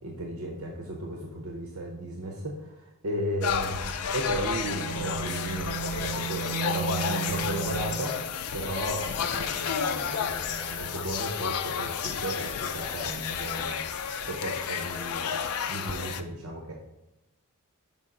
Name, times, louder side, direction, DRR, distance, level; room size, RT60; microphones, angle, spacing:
voice 1, 0.0-15.3 15.7-16.7, right 1 dB, 70° right, 0 dB, 0.8 m, -35 dB
sound 1, 3.4-16.2, left 7 dB, 85° left, 0.4 m, -31 dB
Bowed string instrument, 4.5-8.3, right 9 dB, 35° right, 2.1 m, -35 dB
5.5 x 4.6 x 3.8 m, 0.95 s
head